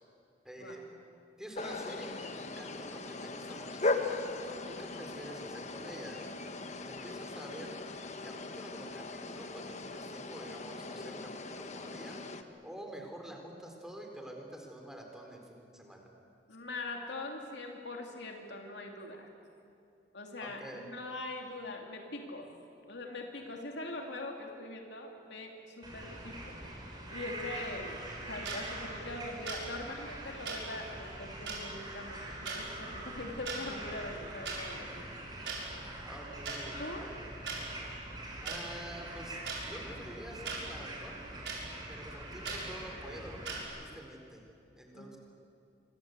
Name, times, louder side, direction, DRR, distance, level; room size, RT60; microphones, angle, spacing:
voice 1, 0.4-0.8 1.4-4.1 4.7-6.2 6.8-7.8 8.2-12.2 12.6-16.1 20.4-20.9 36.0-37.3 38.4-41.2 41.9-43.5 43.7-44.5 44.7-45.2, right 1 dB, 5° right, 2 dB, 4.2 m, -47 dB
sound 1, 1.6-12.4, left 3 dB, 40° left, 1.4 m, -39 dB
voice 2, 16.5-19.3 20.1-22.5 22.9-26.5 27.1-35.1 36.7-37.1 44.9-45.2, left 2 dB, 65° left, 2 dB, 2.8 m, -42 dB
sound 2, 25.8-43.6, right 1 dB, 25° right, 5.8 m, -44 dB
sound 3, 28.4-28.6 29.5-29.6 30.4-30.6 31.5-31.6 32.4-32.6 33.3-33.6 34.4-34.6 35.5-35.6 36.4-36.6 37.5-37.6 38.4-38.6 39.4-39.6 40.4-40.6 41.4-41.6 42.4-42.6 43.4-43.6, right 5 dB, 70° right, 6.5 m, -37 dB
26.0 x 25.5 x 8.2 m, 2.6 s
head